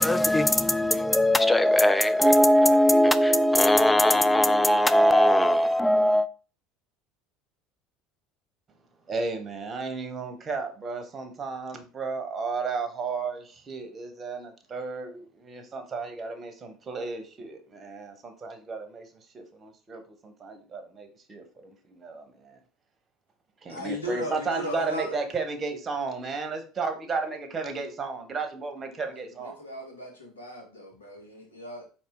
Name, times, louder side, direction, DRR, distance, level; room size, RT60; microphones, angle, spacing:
voice 1, 0.0-6.3, left 1 dB, 10° left, 0.4 m, -20 dB
voice 2, 9.1-19.0 19.3-22.6 23.6-29.6, right 4 dB, 35° right, 1.0 m, -34 dB
voice 3, 23.6-25.2 29.1-31.8, equal, 90° left, 1.1 m, -37 dB
4.3 x 2.9 x 3.5 m
hypercardioid pair, 70°, 0 cm